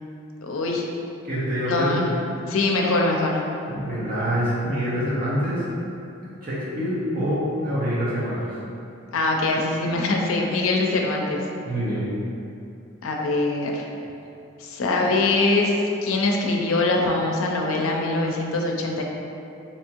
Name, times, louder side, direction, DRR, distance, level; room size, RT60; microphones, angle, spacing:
voice 1, 0.4-0.8 1.7-2.1 2.5-3.4 9.1-11.4 13.0-13.9 14.6-15.7 16.0-19.0, left 2 dB, 85° left, 0 dB, 0.5 m, -23 dB
voice 2, 1.2-2.1 3.7-5.7 6.2-8.5 11.7-12.1, equal, 45° right, -8 dB, 0.9 m, -26 dB
3.4 x 2.8 x 2.9 m, 2.7 s
head